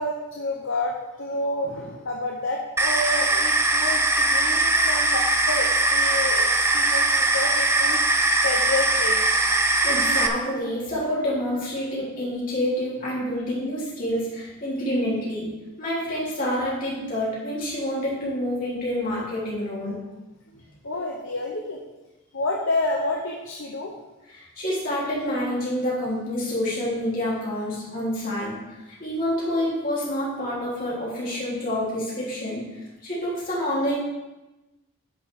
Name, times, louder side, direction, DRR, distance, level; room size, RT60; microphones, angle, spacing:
voice 1, 0.0-8.0 8.4-9.5 20.8-21.8 22.3-23.9, left 2 dB, 55° left, 0 dB, 0.9 m, -29 dB
sound 1, 2.8-10.3, right 2 dB, 10° right, 0.5 m, -21 dB
voice 2, 9.7-15.5 15.8-20.0 24.3-34.0, equal, 40° left, -7 dB, 3.6 m, -28 dB
10.5 x 5.6 x 4.8 m, 1.0 s
head